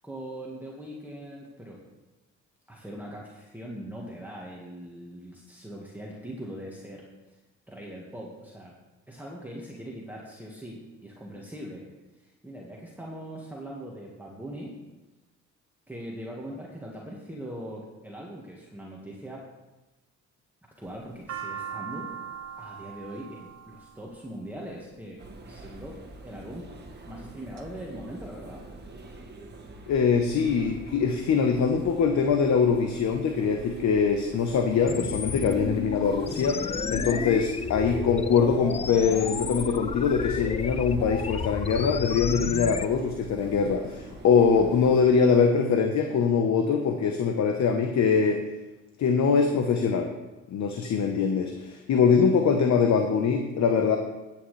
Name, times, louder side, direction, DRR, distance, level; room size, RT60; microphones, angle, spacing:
voice 1, 0.0-1.8 2.7-7.0 7.7-8.7 9.1-11.9 12.2-14.7 15.9-19.5 20.8-22.1 22.6-25.2 25.5-26.7 27.1-28.6, right 1 dB, 5° right, -3 dB, 1.6 m, -41 dB
sound 1, 20.8-25.1 25.9-26.4 27.0-27.6 28.0-28.1 28.2-29.1, right 7 dB, 55° right, 1.3 m, -40 dB
sound 2, 25.2-45.0, right 2 dB, 35° right, 1.8 m, -45 dB
voice 2, 29.9-48.4 49.0-50.1 50.5-54.0, left 6 dB, 65° left, 5 dB, 1.0 m, -23 dB
sound 3, 34.9-42.9, left 5 dB, 20° left, 0.4 m, -32 dB
14.0 x 8.9 x 3.3 m, 1.1 s
cardioid pair, 90°, 30 cm